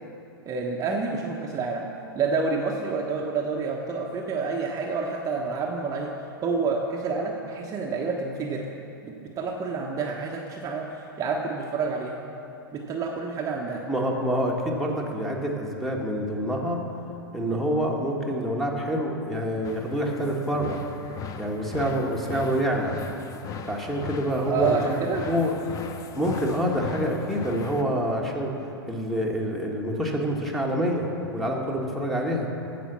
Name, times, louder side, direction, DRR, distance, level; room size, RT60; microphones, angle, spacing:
voice 1, 0.5-1.9 2.2-6.1 6.4-8.6 9.0-12.2 12.7-13.8 24.5-25.2, right 4 dB, 25° right, -1 dB, 1.0 m, -28 dB
voice 2, 13.9-16.8 17.3-20.8 21.4-22.9 23.7-25.0 25.3-25.5 26.1-28.5 28.9-32.5, equal, ahead, -1 dB, 1.6 m, -27 dB
sound 1, 19.6-27.8, left 5 dB, 25° left, 0.7 m, -38 dB
14.5 x 5.2 x 7.4 m, 2.9 s
hypercardioid pair, 105°, 13 cm